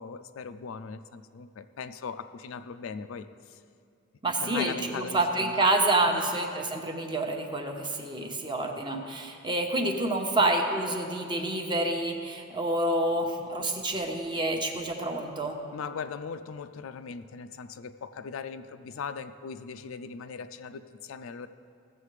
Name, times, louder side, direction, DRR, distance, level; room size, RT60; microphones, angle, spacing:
voice 1, 0.0-3.6 4.4-5.6 6.1-6.2 15.7-21.5, left 5 dB, 75° left, 11 dB, 0.4 m, -39 dB
voice 2, 4.2-15.6, right 2 dB, 25° right, 3 dB, 0.9 m, -28 dB
16.0 x 7.5 x 3.3 m, 2.3 s
head